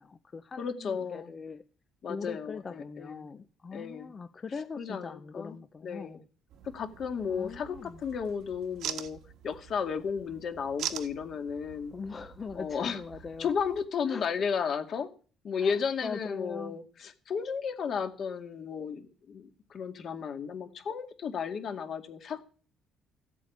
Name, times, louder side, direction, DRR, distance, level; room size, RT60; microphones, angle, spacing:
voice 1, 0.0-1.6 2.1-6.3 7.3-8.0 11.9-13.5 14.1-14.2 15.6-16.8, left 4 dB, 25° left, 10 dB, 0.7 m, -41 dB
voice 2, 0.6-1.3 2.0-3.3 3.7-4.1 4.8-5.6 5.8-6.2 6.6-11.9 12.5-13.0 13.4-15.1 15.4-22.4, left 6 dB, 45° left, 7 dB, 2.1 m, -34 dB
sound 1, 6.5-13.9, right 10 dB, 70° right, 1.6 m, -44 dB
15.5 x 8.4 x 8.5 m, 0.39 s
cardioid pair, 150°, 0 cm